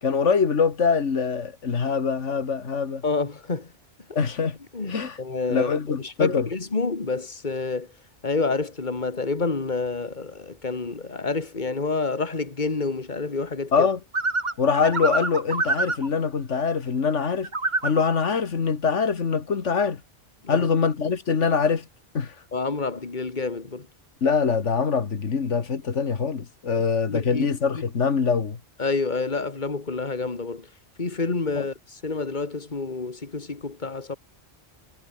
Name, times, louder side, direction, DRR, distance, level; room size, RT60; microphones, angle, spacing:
voice 1, 0.0-3.0 4.1-4.6 4.9-5.2 5.5-6.5 13.7-14.0 14.6-17.5 17.8-20.0 20.5-21.8 22.1-22.3 24.2-28.6 31.6-31.7, left 5 dB, 90° left, 2.0 m, -23 dB
voice 2, 3.0-3.7 4.1-4.2 4.7-7.9 8.2-13.9 20.4-20.7 22.5-23.9 26.8-27.5 27.7-27.8 28.8-30.7 31.0-34.2, left 4 dB, 40° left, 2.3 m, -28 dB
sound 1, 14.1-16.1 17.4-18.0, right 3 dB, 40° right, 2.3 m, -26 dB
omnidirectional pair, 1.2 m